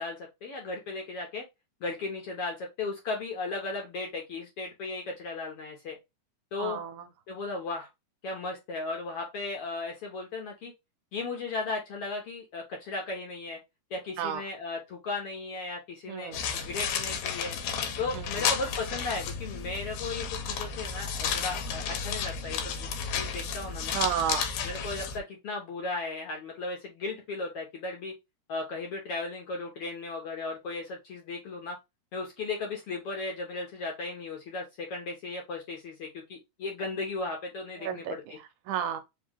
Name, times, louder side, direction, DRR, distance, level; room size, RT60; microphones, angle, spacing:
voice 1, 0.0-1.4 1.8-6.0 6.5-6.8 7.3-7.9 8.2-10.7 11.1-13.6 13.9-17.6 18.0-24.0 24.6-28.1 28.5-31.8 32.1-38.4, left 3 dB, 65° left, 1.6 m, -36 dB
voice 2, 6.6-7.1 14.2-14.4 16.1-16.4 18.1-18.5 23.9-24.5 37.8-39.0, right 9 dB, 80° right, 2.2 m, -32 dB
sound 1, 16.3-25.2, left 6 dB, 90° left, 2.4 m, -32 dB
5.1 x 2.8 x 3.4 m
omnidirectional pair, 3.6 m